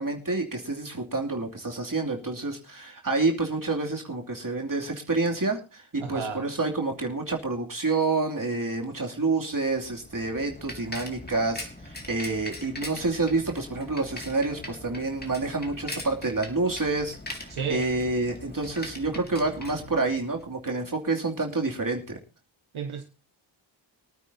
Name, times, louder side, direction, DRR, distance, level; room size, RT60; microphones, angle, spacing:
voice 1, 0.0-22.2, right 3 dB, 40° right, 2.8 m, -28 dB
voice 2, 6.0-6.5 17.5-17.9 22.7-23.0, right 7 dB, 85° right, 1.4 m, -32 dB
Bicycle, 9.7-20.6, left 1 dB, 20° left, 3.6 m, -41 dB
24.0 x 9.2 x 2.8 m
cardioid pair, 45°, 47 cm